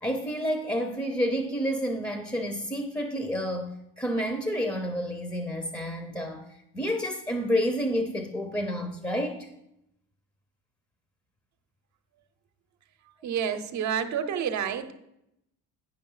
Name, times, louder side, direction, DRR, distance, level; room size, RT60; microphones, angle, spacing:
voice 1, 0.0-9.5, equal, 10° left, 6 dB, 0.7 m, -29 dB
voice 2, 13.2-14.9, right 8 dB, 55° right, 8 dB, 0.8 m, -29 dB
10.0 x 5.2 x 5.6 m, 0.83 s
cardioid pair, 105°, 35 cm